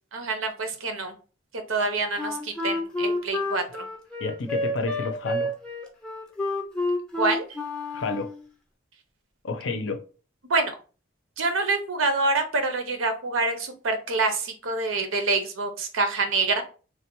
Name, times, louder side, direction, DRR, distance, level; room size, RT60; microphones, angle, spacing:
voice 1, 0.1-1.1 1.7-3.9 7.1-7.4 10.5-10.8 11.4-16.6, right 3 dB, 90° right, 0.7 m, -26 dB
Wind instrument woodwind instrument, 2.2-8.5, left 2 dB, 5° left, 0.5 m, -29 dB
voice 2, 4.2-5.5 7.9-8.3 9.4-10.0, left 3 dB, 70° left, 0.5 m, -30 dB
3.3 x 2.2 x 2.9 m
head